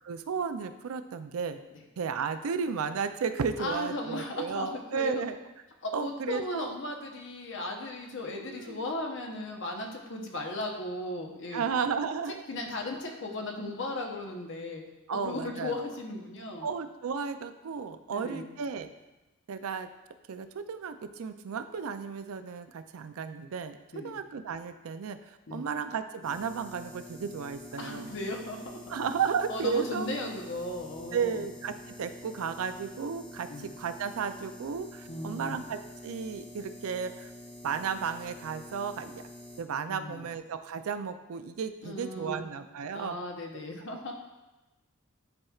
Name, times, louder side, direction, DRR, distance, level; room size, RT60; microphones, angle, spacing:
voice 1, 0.0-1.6 2.0-5.4 5.9-6.7 8.4-8.8 11.5-12.4 15.1-15.9 16.6-18.9 19.5-19.9 20.3-28.2 28.9-30.1 31.1-37.3 37.6-39.2 39.6-43.2, right 6 dB, 80° right, 10 dB, 0.4 m, -34 dB
voice 2, 3.6-5.2 5.8-11.7 12.5-14.8 15.1-16.7 18.1-18.4 23.9-24.2 25.5-25.6 27.8-28.8 29.5-31.4 33.5-33.7 35.1-35.6 39.9-40.3 41.8-42.4 42.9-44.1, left 2 dB, 60° left, 2 dB, 0.9 m, -36 dB
sound 1, 26.2-39.6, left 1 dB, 5° left, 0.9 m, -47 dB
10.5 x 4.3 x 2.4 m, 1.0 s
head